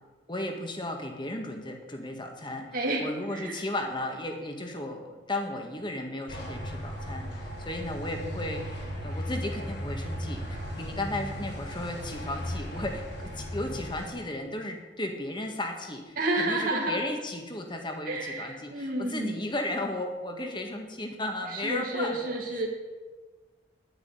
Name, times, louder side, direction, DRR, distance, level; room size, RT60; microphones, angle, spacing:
voice 1, 0.3-2.7 3.0-7.3 7.6-22.3, left 1 dB, 25° left, 4 dB, 1.8 m, -35 dB
voice 2, 2.7-3.6 16.2-17.0 18.0-19.4 21.5-22.7, right 2 dB, 50° right, -1 dB, 2.2 m, -30 dB
sound 1, 6.3-14.1, equal, 60° left, 5.1 m, -36 dB
11.0 x 9.8 x 8.0 m, 1.3 s
head